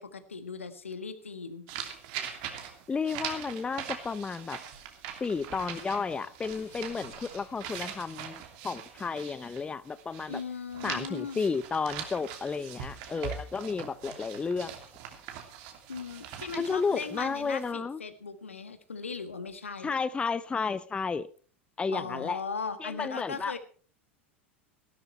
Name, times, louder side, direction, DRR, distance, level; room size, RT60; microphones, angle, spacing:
voice 1, 0.0-1.6 10.3-11.4 15.9-19.9 21.9-23.6, left 5 dB, 80° left, 1.6 m, -38 dB
sound 1, 1.7-10.4 10.7-17.7, right 9 dB, 50° right, 2.8 m, -42 dB
voice 2, 2.9-4.6 5.2-10.4 10.8-14.7 16.6-18.0 19.8-21.3 21.8-22.4 22.8-23.6, left 5 dB, 15° left, 0.6 m, -32 dB
sound 2, 4.6-9.3, left 6 dB, 50° left, 5.1 m, -59 dB
16.0 x 12.5 x 4.5 m
figure-of-eight pair, 80°, 7 cm